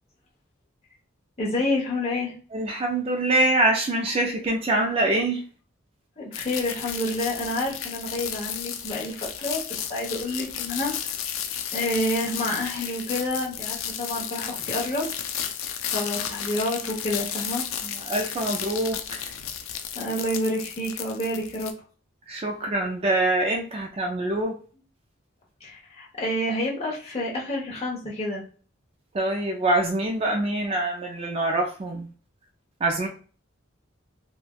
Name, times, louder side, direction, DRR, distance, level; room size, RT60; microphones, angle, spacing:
voice 1, 1.4-2.3 6.2-9.6 9.9-10.9 11.7-15.1 15.8-17.6 19.9-21.7 25.6-28.4, left 1 dB, 30° left, -4 dB, 0.9 m, -28 dB
voice 2, 2.5-5.4 17.8-19.3 22.3-24.5 29.1-32.1 32.8-33.1, right 2 dB, 30° right, 2 dB, 0.3 m, -25 dB
sound 1, 6.3-21.7, left 9 dB, 75° left, 0.4 m, -33 dB
3.2 x 2.2 x 2.3 m, 0.40 s
head